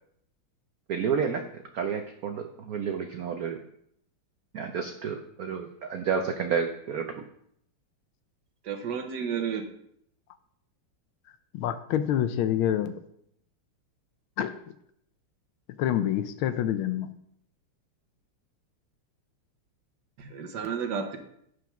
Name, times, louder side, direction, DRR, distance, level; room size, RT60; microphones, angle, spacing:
voice 1, 0.9-1.4 1.7-3.6 4.5-7.1, right 6 dB, 75° right, 5 dB, 0.8 m, -30 dB
voice 2, 8.7-9.6 20.2-21.2, right 7 dB, 60° right, 4 dB, 1.3 m, -31 dB
voice 3, 11.5-13.0 14.4-14.5 15.8-17.1, left 10 dB, 75° left, 11 dB, 1.4 m, -27 dB
7.8 x 5.1 x 5.8 m, 0.72 s
omnidirectional pair, 2.4 m